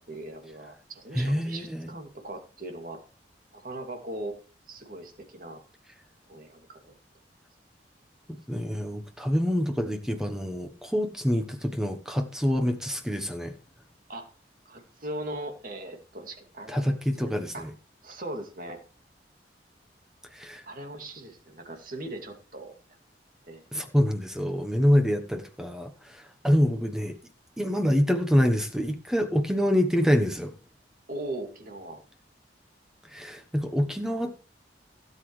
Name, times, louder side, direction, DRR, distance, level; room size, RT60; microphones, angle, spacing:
voice 1, 0.0-3.0 3.5-4.4 4.7-5.6 6.3-6.9 14.1-14.3 14.7-17.3 17.5-17.7 18.0-18.8 20.7-22.7 23.5-23.9 31.1-32.0, right 1 dB, 50° right, 2.5 m, -39 dB
voice 2, 1.1-1.9 8.5-13.5 16.7-17.7 20.3-20.6 23.7-27.2 27.6-30.5 33.1-34.4, equal, 5° right, 1.0 m, -26 dB
16.5 x 8.0 x 3.3 m
head